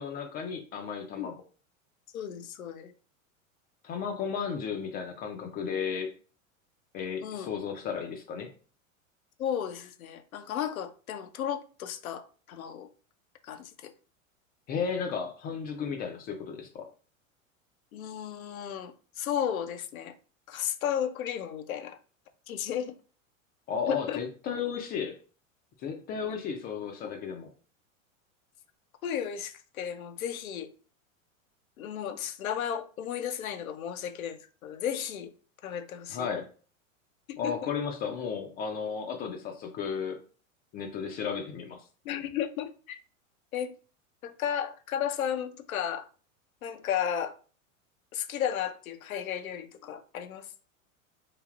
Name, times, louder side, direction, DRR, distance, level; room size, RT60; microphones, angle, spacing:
voice 1, 0.0-1.3 3.8-6.1 6.9-8.5 14.7-16.9 23.7-25.2 25.8-27.5 36.1-36.5 37.4-40.2 40.7-41.8, left 6 dB, 25° left, 0.3 m, -34 dB
voice 2, 2.1-2.9 7.2-7.5 9.4-12.9 13.4-13.9 17.9-20.1 20.5-22.0 22.5-22.9 23.9-24.2 29.0-30.7 31.8-35.3 35.6-36.4 37.3-37.7 42.0-43.0 43.5-43.7 44.2-46.1 46.6-47.4 48.1-50.5, left 9 dB, 85° left, 0.5 m, -34 dB
3.2 x 2.4 x 2.4 m
hypercardioid pair, 100°, 41 cm